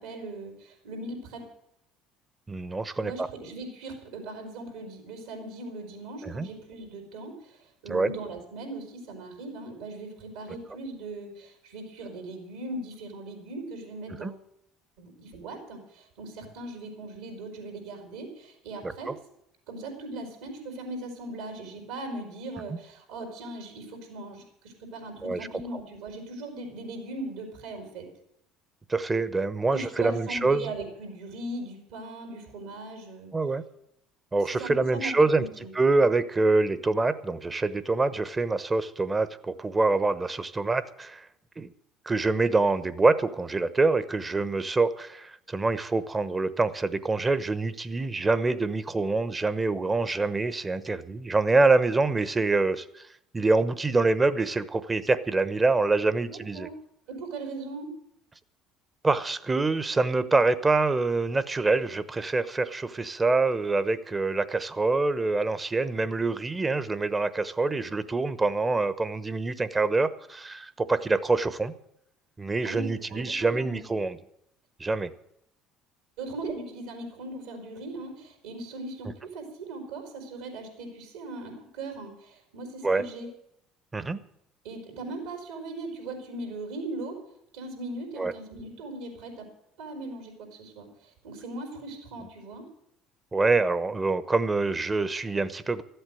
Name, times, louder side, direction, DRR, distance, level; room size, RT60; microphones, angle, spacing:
voice 1, 0.0-1.4 2.9-14.4 15.0-19.1 19.7-28.1 29.7-33.3 34.6-35.7 56.3-56.8 57.1-57.9 72.6-73.8 76.2-83.3 84.6-87.2 87.5-89.5 89.8-92.6, right 2 dB, 75° right, 2 dB, 4.6 m, -39 dB
voice 2, 2.5-3.3 6.2-6.5 7.9-8.1 14.2-14.3 19.1-19.2 22.7-22.8 25.2-25.4 28.9-30.7 33.3-33.6 34.3-35.4 35.7-41.2 41.6-41.7 42.1-53.0 53.3-56.7 59.0-71.8 72.4-74.2 74.8-75.1 82.8-83.0 83.9-84.2 88.2-88.3 93.3-95.8, right 3 dB, 20° right, 14 dB, 1.1 m, -25 dB
14.0 x 8.1 x 9.3 m, 0.77 s
hypercardioid pair, 70°, 0 cm